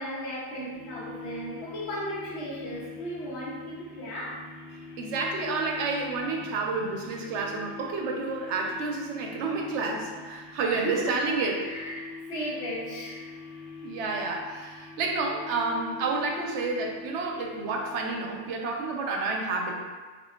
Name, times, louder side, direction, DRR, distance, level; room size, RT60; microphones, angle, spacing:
voice 1, 0.0-4.4 6.4-6.5 10.7-13.3, equal, 75° left, -5 dB, 1.0 m, -35 dB
sound 1, 0.7-19.0, left 4 dB, 50° left, 1.3 m, -44 dB
voice 2, 5.0-11.6 13.8-19.8, right 3 dB, 90° right, 1 dB, 0.9 m, -30 dB
4.3 x 2.7 x 2.2 m, 1.4 s
omnidirectional pair, 1.2 m